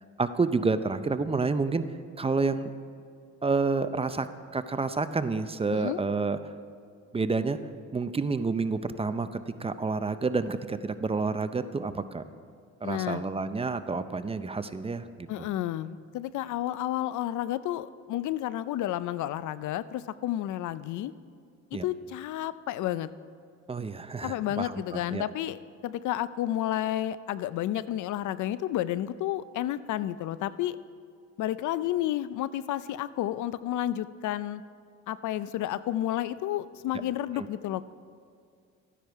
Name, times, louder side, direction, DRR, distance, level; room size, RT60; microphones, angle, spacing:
voice 1, 0.2-1.8 2.2-2.7 3.4-6.5 7.1-7.6 7.9-9.3 9.6-12.2 12.8-15.5 21.7-21.8 23.7-25.2 37.3-37.5, right 4 dB, 20° right, 11 dB, 0.5 m, -29 dB
voice 2, 5.7-6.0 12.8-13.2 15.3-21.1 21.7-23.1 24.2-25.6 25.8-30.8 31.4-34.6 35.1-37.9, left 13 dB, 75° left, 16 dB, 0.5 m, -31 dB
14.0 x 10.0 x 4.7 m, 2.3 s
cardioid pair, 90°, 30 cm